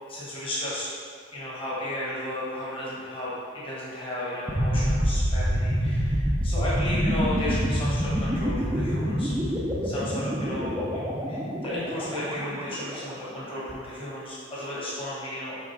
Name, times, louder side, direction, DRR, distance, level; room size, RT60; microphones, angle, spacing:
voice 1, 0.1-0.9 1.3-9.5 9.8-11.0 11.3-15.6, left 1 dB, 25° left, -8 dB, 1.4 m, -34 dB
sound 1, 4.5-13.3, equal, 10° right, 0.5 m, -27 dB
6.0 x 4.2 x 4.6 m, 2.1 s
head